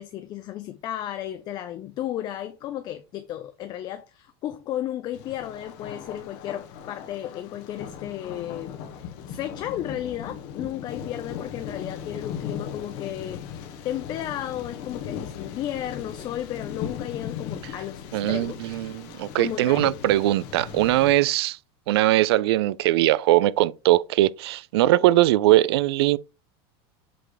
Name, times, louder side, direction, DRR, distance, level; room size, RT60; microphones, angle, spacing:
voice 1, 0.0-18.6 19.4-19.9, left 12 dB, 30° left, 0.6 m, -34 dB
Thunder, 5.1-21.1, left 8 dB, 55° left, 1.4 m, -38 dB
voice 2, 18.1-21.6 21.9-26.2, right 16 dB, 80° right, 0.4 m, -21 dB
7.6 x 3.4 x 4.0 m
supercardioid pair, 150°, 13 cm